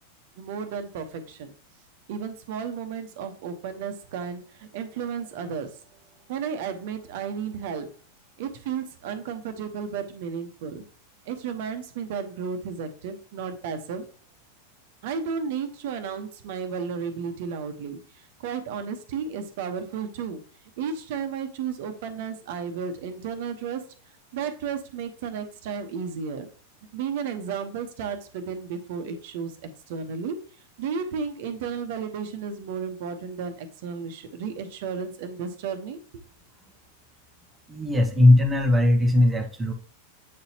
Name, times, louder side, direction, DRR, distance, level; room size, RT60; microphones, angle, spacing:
voice 1, 0.4-1.5 2.1-5.8 6.3-7.9 8.4-10.8 11.2-14.1 15.0-20.4 20.8-23.8 24.3-26.5 26.9-29.5 29.9-30.4 30.8-36.0, right 6 dB, 50° right, 8 dB, 1.1 m, -33 dB
voice 2, 37.7-39.7, left 1 dB, 15° right, 4 dB, 1.0 m, -19 dB
8.5 x 4.1 x 2.9 m, 0.41 s
figure-of-eight pair, 90°, 0 cm